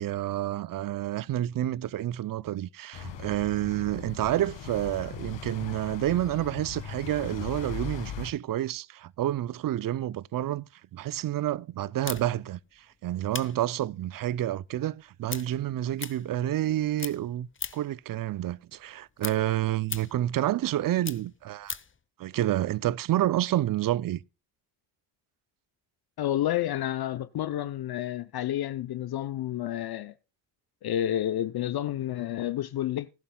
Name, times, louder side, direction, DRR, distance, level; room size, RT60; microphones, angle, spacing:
voice 1, 0.0-21.8 22.2-24.2, right 13 dB, 50° right, 0.5 m, -29 dB
sound 1, 2.9-8.3, left 7 dB, 80° left, 1.8 m, -39 dB
sound 2, 12.0-16.7 17.0-18.0 18.4-22.0, left 6 dB, 25° left, 0.9 m, -40 dB
voice 2, 26.2-30.1 30.8-33.1, left 12 dB, 60° left, 0.6 m, -30 dB
20.0 x 11.0 x 2.2 m
cardioid pair, 75°, 44 cm